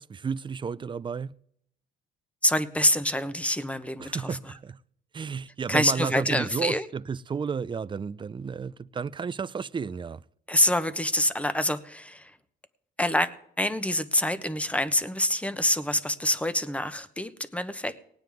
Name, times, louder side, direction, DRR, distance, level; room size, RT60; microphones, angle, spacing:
voice 1, 0.0-1.3 4.0-4.8 5.1-10.2, right 6 dB, 25° right, 0.4 m, -32 dB
voice 2, 2.4-4.5 5.7-6.9 10.5-12.4 13.0-13.3 13.6-18.0, left 1 dB, 5° left, 0.9 m, -26 dB
19.0 x 9.2 x 3.5 m
cardioid pair, 90°, 20 cm